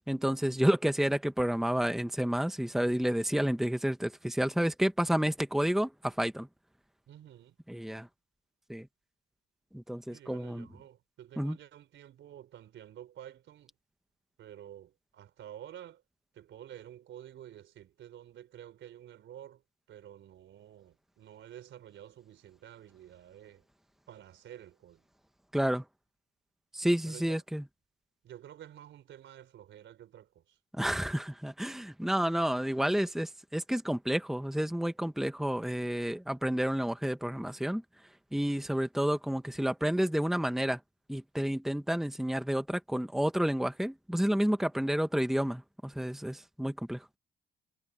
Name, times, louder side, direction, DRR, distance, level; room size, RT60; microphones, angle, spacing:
voice 1, 0.1-6.5 7.7-8.1 8.7-8.9 9.7-10.7 11.4-11.6 25.5-25.8 26.7-27.6 30.7-37.8 38.3-40.8 41.1-47.1, equal, ahead, 1.5 m, -30 dB
voice 2, 7.1-7.6 10.1-13.7 14.4-16.0 16.3-19.6 19.9-23.6 24.1-25.0 27.1-27.4 28.2-30.6, right 11 dB, 75° right, 4.4 m, -50 dB
cardioid pair, 90°, 20 cm